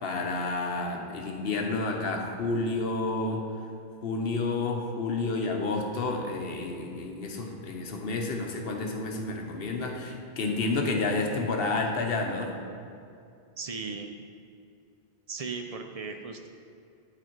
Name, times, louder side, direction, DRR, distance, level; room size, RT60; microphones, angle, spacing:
voice 1, 0.0-3.5 4.0-12.6, left 3 dB, 70° left, 2 dB, 1.0 m, -30 dB
voice 2, 13.6-14.2 15.3-16.5, right 4 dB, 50° right, 4 dB, 0.4 m, -37 dB
8.9 x 4.3 x 4.5 m, 2.5 s
omnidirectional pair, 1.0 m